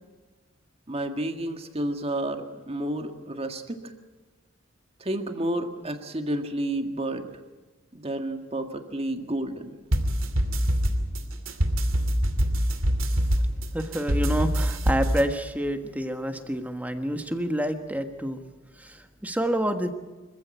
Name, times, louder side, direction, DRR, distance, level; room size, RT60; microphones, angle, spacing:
voice 1, 0.9-3.8 5.0-7.2 7.9-9.7, right 1 dB, 30° right, 6 dB, 1.8 m, -30 dB
sound 1, 9.9-15.2, equal, 75° right, 2.6 m, -24 dB
voice 2, 13.7-18.4 18.7-20.0, equal, 10° right, 7 dB, 1.4 m, -28 dB
26.0 x 15.0 x 9.1 m, 1.3 s
head